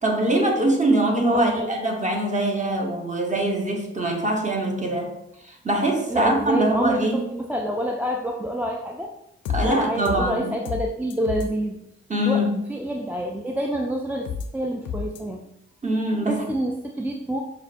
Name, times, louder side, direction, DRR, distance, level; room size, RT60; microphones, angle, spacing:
voice 1, 0.0-5.1 5.4-7.3 9.5-10.5 12.1-12.6 15.8-16.4, right 1 dB, 25° right, 2 dB, 0.9 m, -23 dB
voice 2, 1.3-1.7 6.1-9.1 9.6-11.8 12.2-15.4 16.3-17.4, equal, 5° right, 1 dB, 0.3 m, -28 dB
sound 1, 9.4-9.6 10.0-10.2 10.6-10.8 11.1-11.4 14.2-14.4 14.8-15.2, left 7 dB, 90° left, 0.5 m, -28 dB
5.6 x 2.2 x 2.5 m, 0.82 s
supercardioid pair, 45°, 30 cm